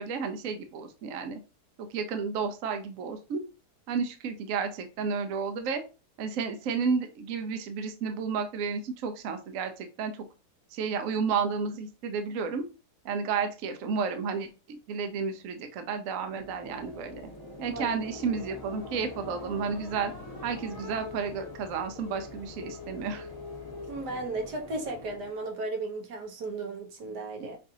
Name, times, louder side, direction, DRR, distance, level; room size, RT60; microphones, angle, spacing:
voice 1, 0.0-1.4 1.8-3.4 3.9-5.8 6.2-10.3 10.7-12.6 13.0-17.3 17.6-20.1 20.4-23.3, right 5 dB, 65° right, 0.9 m, -32 dB
sound 1, 16.2-25.5, left 3 dB, 25° left, 0.4 m, -43 dB
voice 2, 17.6-17.9 23.9-27.6, right 2 dB, 85° right, 1.5 m, -35 dB
5.4 x 2.6 x 2.7 m
omnidirectional pair, 1.7 m